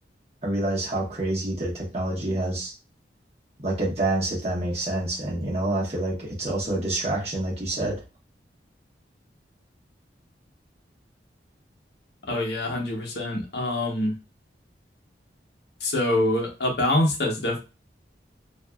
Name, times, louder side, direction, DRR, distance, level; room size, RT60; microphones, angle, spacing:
voice 1, 0.4-2.7 3.6-8.0, right 1 dB, 35° right, -5 dB, 1.2 m, -27 dB
voice 2, 12.3-14.1 15.8-17.6, left 1 dB, 70° left, 0 dB, 0.8 m, -25 dB
2.7 x 2.5 x 2.3 m, 0.30 s
head